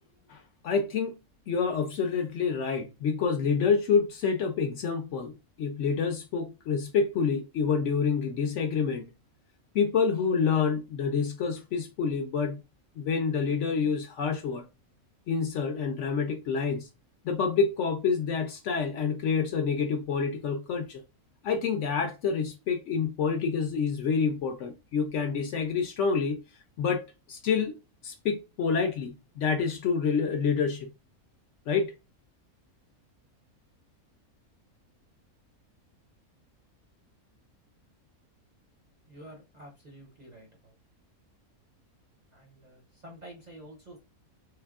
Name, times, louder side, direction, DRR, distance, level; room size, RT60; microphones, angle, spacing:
voice 1, 0.3-1.2 1.5-9.1 9.7-12.6 13.0-14.6 15.3-16.9 17.2-21.0 21.4-26.4 26.8-27.0 27.3-27.8 28.0-30.9 31.7-31.9, left 5 dB, 65° left, 0.8 m, -28 dB
voice 2, 39.1-40.8 42.3-44.0, right 1 dB, 40° right, 0.6 m, -49 dB
3.4 x 3.2 x 2.4 m
omnidirectional pair, 1.5 m